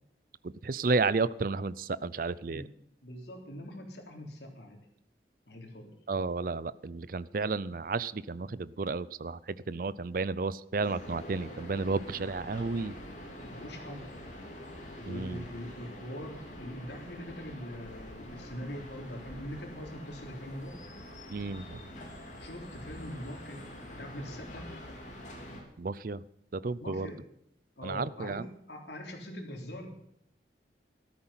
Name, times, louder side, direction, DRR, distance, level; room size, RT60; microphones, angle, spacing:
voice 1, 0.4-2.7 6.1-13.0 15.1-15.4 21.3-21.8 25.8-26.2 26.5-27.1 27.8-28.4, right 3 dB, 50° right, 18 dB, 0.5 m, -32 dB
voice 2, 3.0-4.8 5.5-5.9 13.5-14.1 15.0-20.8 22.4-24.7 26.8-27.2 27.8-28.4 28.7-29.9, equal, 75° left, 2 dB, 3.4 m, -42 dB
sound 1, 10.8-25.6, left 1 dB, 45° left, 3.6 m, -46 dB
14.0 x 13.0 x 5.7 m, 0.77 s
head